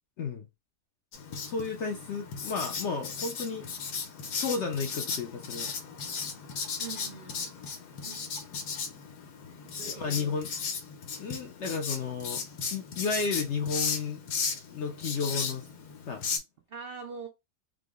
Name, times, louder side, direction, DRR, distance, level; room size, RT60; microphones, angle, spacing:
voice 1, 0.2-0.5 1.4-3.6 4.4-5.7 9.8-10.5 11.2-12.4 12.7-14.2 14.7-15.7 16.1-16.2, left 5 dB, 65° left, 0.7 m, -32 dB
Writing, 1.1-16.4, left 5 dB, 85° left, 1.3 m, -36 dB
voice 2, 6.8-7.5 8.0-8.2 9.6-10.6 16.7-17.3, right 5 dB, 85° right, 0.5 m, -43 dB
3.7 x 2.0 x 3.5 m
omnidirectional pair, 1.7 m